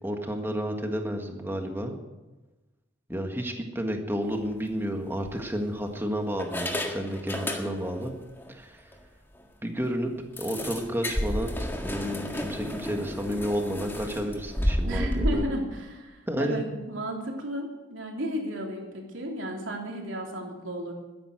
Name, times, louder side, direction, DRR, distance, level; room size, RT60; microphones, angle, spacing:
voice 1, 0.0-2.0 3.1-8.1 8.5-8.9 9.6-10.1 10.4-15.4 16.3-16.6, equal, 10° right, 4 dB, 1.6 m, -31 dB
sound 1, 4.3-4.6 5.2-5.9 6.4-8.0 8.4-8.5 8.9-9.0 9.3-9.4 10.4-15.3, left 1 dB, 10° left, 1.7 m, -31 dB
voice 2, 14.8-20.9, equal, 90° right, 0 dB, 3.3 m, -33 dB
13.5 x 10.5 x 7.8 m, 1.1 s
head